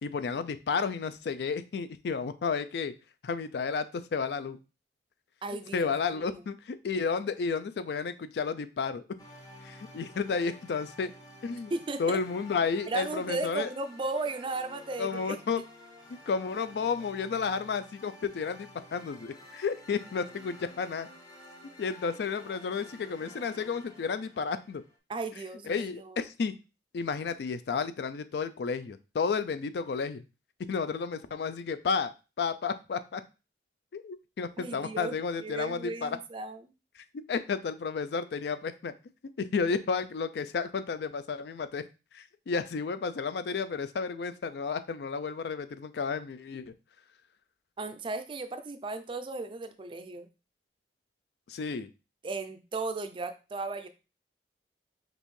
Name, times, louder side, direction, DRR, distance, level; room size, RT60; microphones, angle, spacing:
voice 1, 0.0-2.9 3.2-4.6 5.7-9.0 9.6-11.1 11.4-11.7 12.0-13.7 15.0-15.6 16.3-21.1 21.8-24.8 25.7-26.5 26.9-30.2 30.7-33.2 33.9-36.2 37.0-38.9 39.4-41.8 42.1-46.7 51.5-51.9, left 5 dB, 65° left, 12 dB, 0.4 m, -32 dB
voice 2, 5.4-6.4 11.7-12.2 12.9-15.4 25.1-26.2 34.6-36.6 47.8-50.3 52.2-53.9, right 3 dB, 30° right, 8 dB, 0.4 m, -36 dB
sound 1, 9.2-25.0, left 1 dB, 20° left, 0.7 m, -52 dB
5.2 x 2.5 x 3.2 m, 0.30 s
head